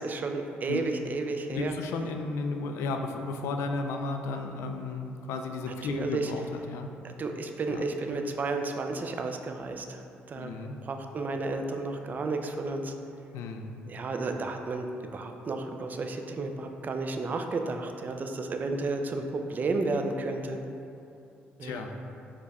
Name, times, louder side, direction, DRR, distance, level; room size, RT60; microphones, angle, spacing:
voice 1, 0.0-1.7 5.9-6.3 7.0-10.0 10.3-10.5 10.8-12.9 13.9-14.9 15.1-20.6 21.6-21.8, right 3 dB, 40° right, 5 dB, 0.4 m, -32 dB
voice 2, 1.5-6.9 7.7-7.8 10.3-10.8 13.3-13.7 21.6-21.9, left 3 dB, 85° left, 5 dB, 0.3 m, -34 dB
4.9 x 2.3 x 4.1 m, 2.7 s
cardioid pair, 80°, 5 cm